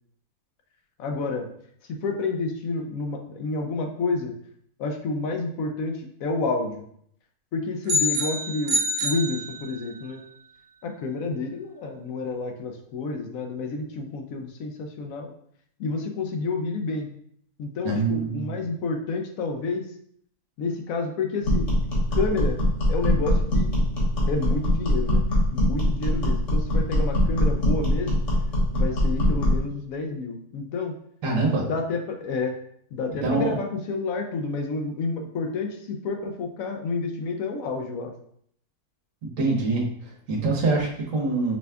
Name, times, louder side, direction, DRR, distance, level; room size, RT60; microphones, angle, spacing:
voice 1, 1.0-1.5 1.8-4.4 4.8-6.8 7.5-10.2 10.8-15.3 15.8-17.1 17.6-19.9 20.6-21.7 22.1-22.6 22.9-23.8 24.3-25.2 25.5-28.2 28.7-30.9 31.6-32.6 32.9-38.1, left 3 dB, 70° left, 3 dB, 0.9 m, -29 dB
sound 1, 7.9-10.1, left 1 dB, 85° right, 0.5 m, -26 dB
voice 2, 17.8-18.6 31.2-31.7 33.2-33.6 39.2-41.6, right 3 dB, 60° right, 0 dB, 1.3 m, -25 dB
sound 2, 21.4-29.6, left 1 dB, 50° left, 1.7 m, -22 dB
5.0 x 2.3 x 3.3 m, 0.66 s
omnidirectional pair, 1.6 m